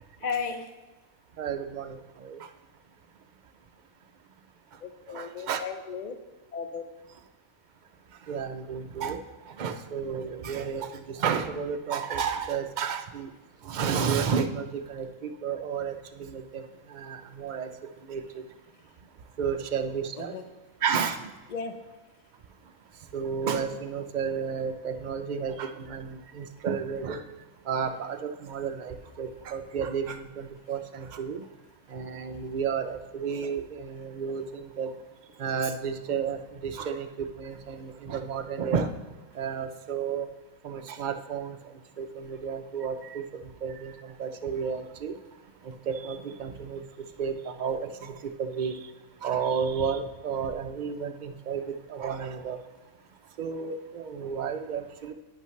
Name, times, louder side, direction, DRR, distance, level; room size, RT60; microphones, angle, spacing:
voice 1, 0.2-0.7 4.8-6.2 6.5-6.8 20.2-20.4 21.5-21.7, left 6 dB, 40° left, 7 dB, 0.7 m, -34 dB
voice 2, 1.4-2.5 5.1-5.6 8.3-9.2 9.6-13.3 13.6-15.1 15.4-16.6 16.9-17.7 18.1-18.4 19.4-20.3 20.8-21.3 23.1-27.2 27.7-31.4 31.9-34.9 35.4-38.9 39.4-40.3 40.6-41.6 42.0-43.2 43.6-45.1 45.6-46.8 47.2-48.8 49.2-52.6 53.4-55.1, right 6 dB, 60° right, 7 dB, 0.5 m, -32 dB
11.0 x 9.6 x 3.2 m, 1.2 s
omnidirectional pair, 1.5 m